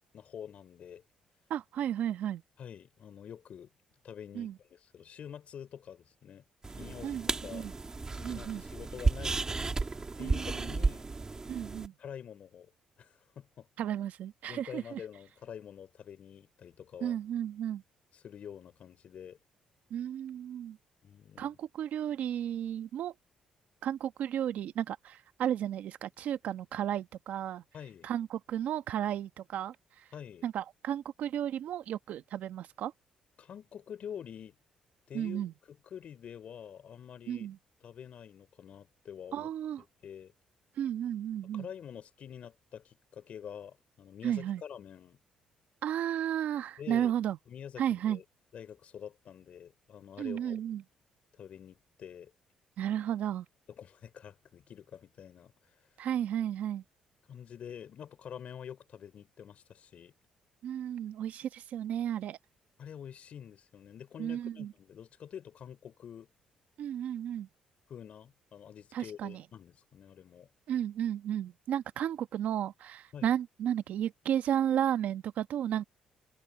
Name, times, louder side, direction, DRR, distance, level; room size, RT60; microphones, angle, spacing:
voice 1, 0.1-1.0 2.6-3.7 4.0-6.4 6.8-7.7 8.2-9.4 10.2-11.1 12.0-12.7 13.0-13.7 14.5-17.2 18.1-19.4 21.0-21.6 27.7-28.1 30.1-30.5 33.4-34.5 35.1-37.5 37.8-39.5 40.0-40.3 41.5-45.2 46.8-47.1 47.5-48.2 48.5-50.6 51.3-52.3 53.8-55.5 57.3-60.1 62.8-66.3 67.9-70.5 73.1-73.4, left 8 dB, 55° left, 4.2 m, -47 dB
voice 2, 1.5-2.4 4.3-4.5 7.0-7.7 8.2-8.6 10.2-10.7 11.5-11.9 13.8-15.0 17.0-17.8 19.9-20.8 21.4-23.1 23.8-27.6 28.0-30.0 30.4-32.9 35.1-35.5 37.3-37.6 39.3-39.8 40.8-41.7 44.2-44.6 45.8-47.4 47.8-48.2 50.2-50.8 52.8-53.4 56.0-56.8 60.6-62.4 64.2-64.7 66.8-67.5 68.9-69.4 70.7-75.8, right 10 dB, 70° right, 1.1 m, -33 dB
sound 1, 6.6-11.9, right 3 dB, 25° right, 1.9 m, -33 dB
cardioid pair, 105°, 3 cm